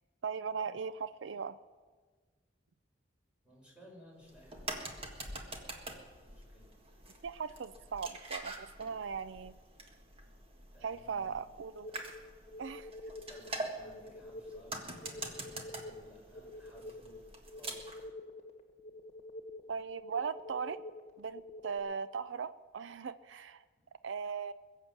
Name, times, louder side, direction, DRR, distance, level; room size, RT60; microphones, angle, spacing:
voice 1, 0.2-1.6 7.2-9.5 10.8-11.9 12.6-12.9 19.7-20.8 21.2-23.6 24.0-24.5, right 6 dB, 85° right, 14 dB, 0.5 m, -38 dB
voice 2, 3.4-5.6 6.2-6.7 10.7-11.4 13.3-17.2 17.6-18.0 23.3-23.4, equal, 5° right, -3 dB, 5.4 m, -59 dB
sound 1, 4.2-18.1, right 2 dB, 30° right, 1.7 m, -45 dB
sound 2, 11.8-21.8, left 1 dB, 35° left, 1.7 m, -48 dB
22.0 x 7.4 x 7.3 m, 1.4 s
head